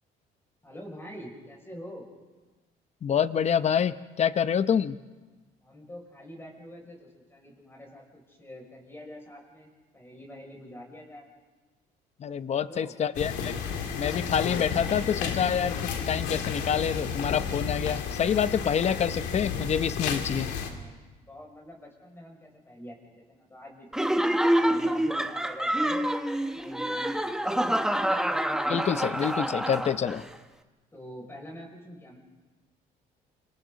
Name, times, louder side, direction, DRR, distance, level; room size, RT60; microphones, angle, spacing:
voice 1, 0.6-2.1 5.6-11.2 12.4-12.9 20.3-26.1 26.5-27.8 30.9-32.2, equal, 15° left, -1 dB, 6.4 m, -45 dB
voice 2, 3.0-5.0 12.2-13.5 13.9-20.5 28.7-30.2, left 8 dB, 40° left, 13 dB, 0.8 m, -27 dB
sound 1, 13.1-20.7, left 6 dB, 85° left, 2.6 m, -32 dB
Laughter, 23.9-30.3, right 1 dB, 5° right, 1.0 m, -27 dB
29.0 x 26.5 x 4.1 m, 1.3 s
cardioid pair, 110°, 17 cm